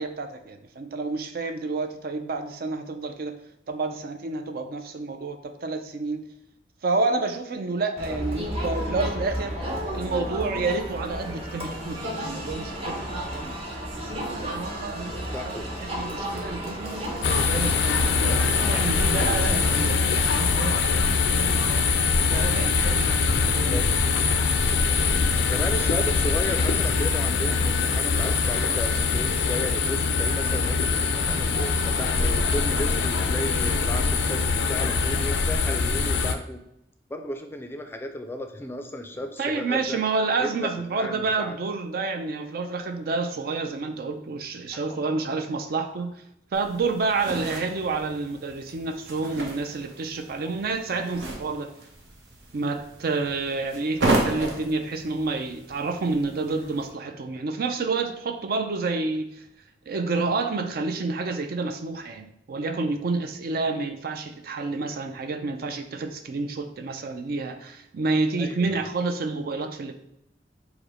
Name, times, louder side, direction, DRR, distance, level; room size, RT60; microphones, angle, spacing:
voice 1, 0.0-3.4 3.7-6.2 6.8-9.5 9.9-13.7 14.2-21.9 22.3-23.8 39.4-46.1 46.5-51.7 52.5-59.3 59.9-69.9, right 3 dB, 55° right, 6 dB, 0.4 m, -29 dB
Crowd, 8.0-19.9, equal, 35° right, 0.9 m, -32 dB
voice 2, 15.3-15.7 23.5-23.8 25.5-36.6 37.1-40.0 40.4-41.6 44.7-45.3 68.4-68.9, left 1 dB, 15° left, 5 dB, 0.4 m, -34 dB
sound 1, 17.2-36.3, left 4 dB, 75° left, 0.4 m, -23 dB
sound 2, 46.5-56.9, right 2 dB, 75° right, 1.0 m, -33 dB
5.0 x 2.1 x 4.8 m, 0.79 s
head